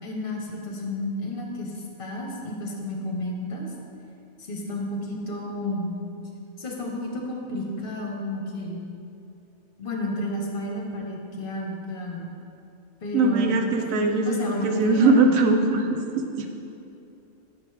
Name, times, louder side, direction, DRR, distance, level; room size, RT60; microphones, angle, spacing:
voice 1, 0.0-1.7 2.0-3.7 4.4-6.0 6.6-8.9 9.8-12.3 13.0-13.8 14.2-15.3, left 1 dB, 45° left, 0 dB, 1.1 m, -31 dB
voice 2, 13.1-16.5, right 3 dB, 85° right, 4 dB, 1.1 m, -21 dB
7.0 x 5.0 x 4.9 m, 2.8 s
omnidirectional pair, 1.4 m